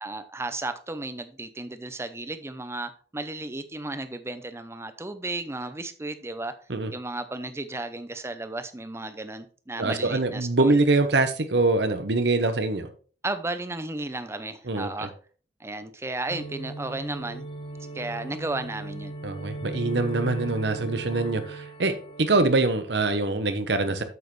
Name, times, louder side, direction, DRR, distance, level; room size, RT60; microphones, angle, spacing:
voice 1, 0.0-6.6 6.9-10.8 13.2-15.1 15.6-17.5 17.9-19.1, right 2 dB, 15° right, 0.6 m, -34 dB
voice 2, 9.8-12.9 14.7-15.1 19.2-21.9 22.2-24.0, right 2 dB, 70° right, 1.0 m, -24 dB
sound 1, 16.3-22.8, right 2 dB, 30° left, 0.8 m, -37 dB
7.9 x 7.4 x 3.2 m
head